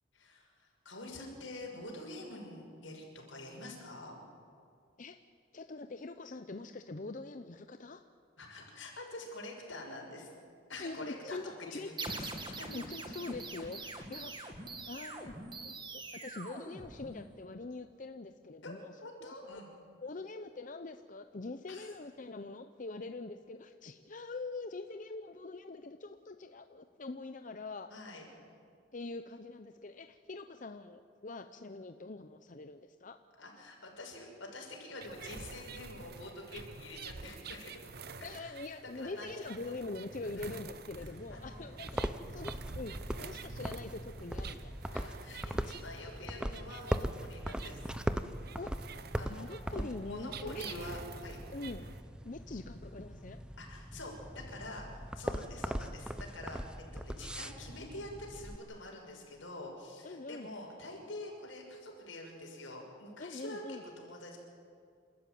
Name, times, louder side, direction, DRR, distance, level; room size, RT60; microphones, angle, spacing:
voice 1, 0.1-4.1 8.4-10.3 10.7-11.4 11.7-12.7 18.6-18.7 19.0-19.7 21.7-21.9 27.9-28.3 33.4-38.1 38.4-38.6 38.9-39.8 40.3-40.5 41.3-41.7 44.9-47.9 49.2-49.4 49.7-51.4 53.6-54.9 55.1-64.4, left 2 dB, 80° left, 0 dB, 6.3 m, -46 dB
voice 2, 5.5-8.0 10.8-11.9 12.7-14.6 14.9-15.3 15.6-15.8 16.1-18.9 19.2-19.3 20.0-27.9 28.9-33.2 38.2-44.7 48.6-48.7 49.2-50.6 51.5-51.8 52.2-53.4 60.0-60.5 63.2-63.8, left 3 dB, 40° left, 8 dB, 0.7 m, -44 dB
sound 1, 12.0-17.4, right 3 dB, 25° right, 2.0 m, -43 dB
sound 2, 35.0-52.0, right 4 dB, 55° right, 1.0 m, -48 dB
sound 3, 40.9-58.6, equal, 5° right, 0.7 m, -40 dB
28.5 x 13.5 x 9.4 m, 2.3 s
head